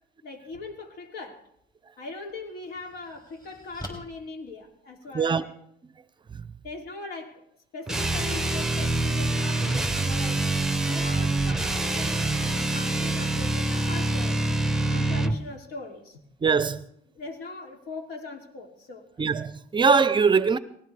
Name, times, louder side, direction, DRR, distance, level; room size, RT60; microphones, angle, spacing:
voice 1, 0.2-1.5 2.0-5.5 6.6-7.4 7.7-10.5 10.9-14.6 14.9-16.2 17.1-19.1, left 3 dB, 70° left, 2.8 m, -40 dB
sound 1, 1.6-1.7 2.3-5.3, left 1 dB, 25° left, 4.6 m, -45 dB
sound 2, 7.9-15.4, right 2 dB, 5° right, 0.9 m, -25 dB
voice 2, 16.4-16.8 19.2-20.6, right 5 dB, 30° right, 0.6 m, -22 dB
19.5 x 17.0 x 3.4 m
cardioid pair, 110°, 17 cm